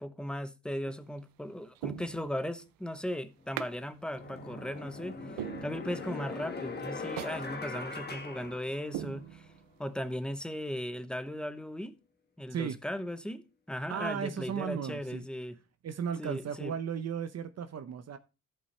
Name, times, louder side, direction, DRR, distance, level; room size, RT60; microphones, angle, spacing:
voice 1, 0.0-9.5 9.8-11.9 12.4-15.6 16.2-16.7, equal, 5° left, 0.8 m, -37 dB
sound 1, 0.8-1.2 1.8-2.7 3.6-3.8 4.2-4.3 4.8-4.9 5.4-6.3 6.6-6.7 7.2-7.4 7.8-7.9 8.4-8.5 8.9-9.8 10.2-10.3, right 13 dB, 90° right, 0.6 m, -41 dB
sound 2, 3.4-3.5 4.1-9.3, left 3 dB, 30° left, 1.4 m, -41 dB
voice 2, 13.9-15.2 15.8-18.2, right 7 dB, 50° right, 0.7 m, -35 dB
14.0 x 5.4 x 3.2 m
cardioid pair, 120°, 33 cm